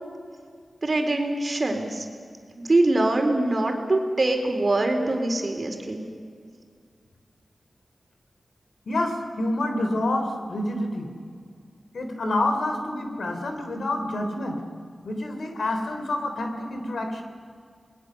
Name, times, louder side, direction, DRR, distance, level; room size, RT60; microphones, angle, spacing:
voice 1, 0.8-2.1 2.6-6.0, right 2 dB, 45° right, 3 dB, 4.0 m, -23 dB
voice 2, 8.9-11.1 11.9-14.6 15.0-17.2, left 1 dB, 80° left, 5 dB, 3.5 m, -28 dB
29.0 x 20.5 x 6.9 m, 2.1 s
wide cardioid pair, 65°, 0 cm